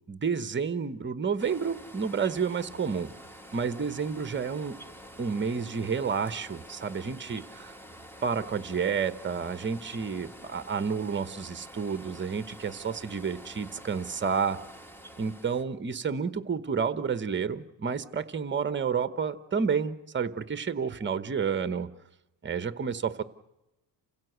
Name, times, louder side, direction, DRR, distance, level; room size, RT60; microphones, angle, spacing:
voice 1, 0.1-3.1 3.5-4.8 5.2-7.7 8.2-14.6 15.2-21.9 22.4-23.2, right 6 dB, 25° right, 14 dB, 1.0 m, -30 dB
sound 1, 1.4-15.6, equal, 5° left, 1.3 m, -48 dB
28.5 x 16.0 x 8.0 m, 0.98 s
cardioid pair, 120°, 46 cm